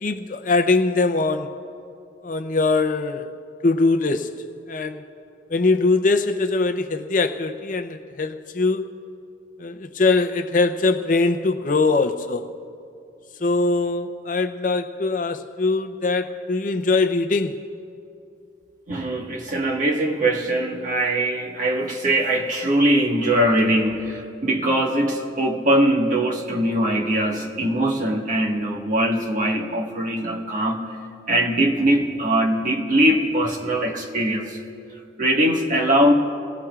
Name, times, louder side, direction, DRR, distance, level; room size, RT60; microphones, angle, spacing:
voice 1, 0.0-1.5 2.2-3.3 3.6-4.3 4.7-5.0 5.5-8.9 9.6-12.5 13.4-17.6, left 3 dB, 45° left, 8 dB, 0.6 m, -22 dB
voice 2, 18.9-30.8 31.3-34.6 35.2-36.1, right 1 dB, 40° right, 0 dB, 1.5 m, -21 dB
28.5 x 18.0 x 2.4 m, 2.6 s
head